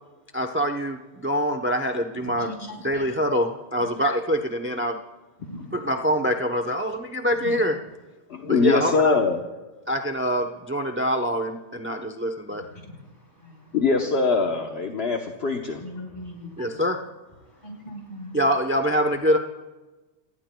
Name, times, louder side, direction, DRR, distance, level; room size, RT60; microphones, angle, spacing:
voice 1, 0.3-2.5 2.8-5.0 5.7-7.8 8.4-9.2 9.9-12.6 16.6-17.0 18.3-19.4, equal, 10° right, 6 dB, 0.7 m, -25 dB
voice 2, 2.4-3.1 3.8-3.9 5.4-5.6 12.9-13.0 13.4-13.5 15.8-16.8 17.6-18.4, left 1 dB, 40° left, 1 dB, 4.6 m, -39 dB
voice 3, 8.3-9.4 13.7-15.8, left 4 dB, 60° left, 2 dB, 1.3 m, -22 dB
29.0 x 18.5 x 2.3 m, 1.2 s
omnidirectional pair, 1.2 m